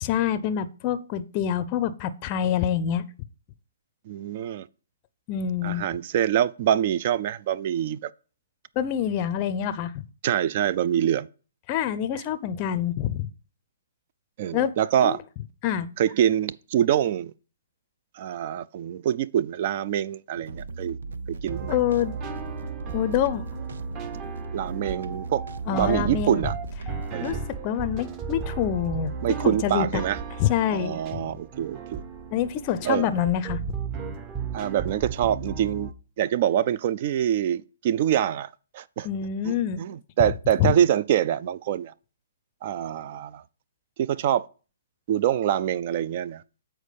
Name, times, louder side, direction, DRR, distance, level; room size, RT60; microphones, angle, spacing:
voice 1, 0.0-3.0 5.3-5.8 8.8-10.0 11.7-13.3 14.5-14.7 15.0-15.2 15.6-15.9 21.7-22.2 22.9-23.5 25.7-26.4 27.2-27.4 27.6-29.1 29.4-30.1 30.4-31.3 32.3-33.6 39.0-39.8 40.6-40.7, left 9 dB, 30° left, 0.5 m, -26 dB
voice 2, 4.1-4.7 5.6-8.1 10.2-11.3 14.4-15.2 16.0-17.3 18.2-21.0 21.3-21.8 24.5-26.5 27.1-27.4 29.2-30.2 30.7-32.0 32.8-33.1 34.5-35.9 36.2-39.1 39.4-41.9 42.6-43.4 44.0-44.5 45.1-46.4, right 10 dB, 40° right, 0.3 m, -25 dB
sound 1, 20.3-27.3, right 3 dB, 75° right, 0.7 m, -37 dB
sound 2, 21.5-35.9, right 5 dB, 25° right, 0.8 m, -35 dB
8.2 x 4.4 x 5.1 m
hypercardioid pair, 145°, 0 cm